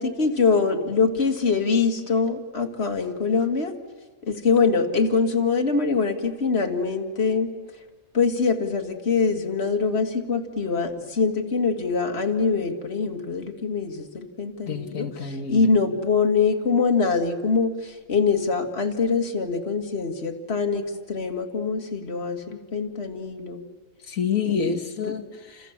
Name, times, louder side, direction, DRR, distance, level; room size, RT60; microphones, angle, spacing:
voice 1, 0.0-3.7 4.2-7.5 8.1-23.6 24.5-24.8, left 4 dB, 50° left, 4 dB, 2.3 m, -24 dB
voice 2, 14.7-15.7 24.1-25.7, left 7 dB, 90° left, 4 dB, 1.8 m, -28 dB
28.5 x 28.0 x 7.4 m, 1.3 s
omnidirectional pair, 1.4 m